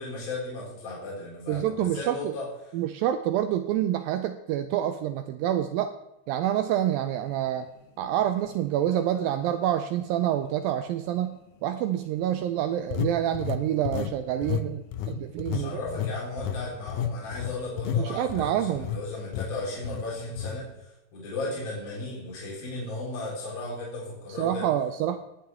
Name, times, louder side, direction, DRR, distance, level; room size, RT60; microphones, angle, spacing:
voice 1, 0.0-2.5 15.5-24.7, left 2 dB, 60° left, -6 dB, 5.5 m, -35 dB
voice 2, 1.5-2.3 2.7-6.0 6.3-7.7 8.0-15.8 18.0-18.9 24.4-25.2, right 11 dB, 90° right, 8 dB, 2.0 m, -27 dB
sound 1, 8.4-8.6 9.2-9.3 12.9-14.2 14.4-14.7 14.9-19.0 19.3-19.5 19.8-20.0 20.4-20.6, left 8 dB, 80° left, 1.9 m, -31 dB
19.0 x 9.4 x 3.5 m, 0.91 s
omnidirectional pair, 4.7 m